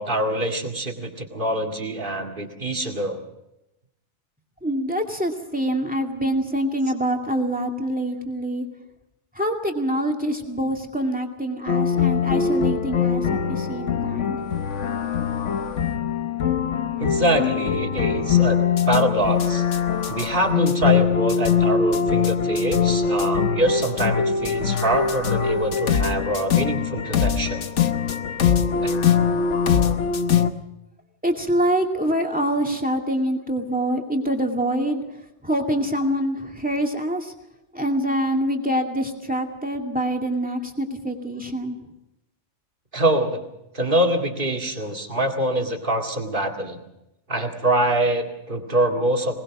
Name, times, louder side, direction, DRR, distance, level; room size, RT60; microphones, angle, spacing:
voice 1, 0.0-3.2 17.0-19.6 20.1-27.7 28.8-29.0 42.9-43.4 43.7-46.8 47.3-49.4, right 1 dB, 45° right, 2 dB, 2.4 m, -24 dB
voice 2, 4.6-8.7 9.3-14.4 31.2-35.0 35.4-37.3 37.7-41.8, right 1 dB, 5° right, 2 dB, 2.3 m, -25 dB
sound 1, 11.7-30.5, left 7 dB, 85° left, 1.4 m, -22 dB
21.5 x 19.5 x 6.2 m, 0.89 s
omnidirectional pair, 1.2 m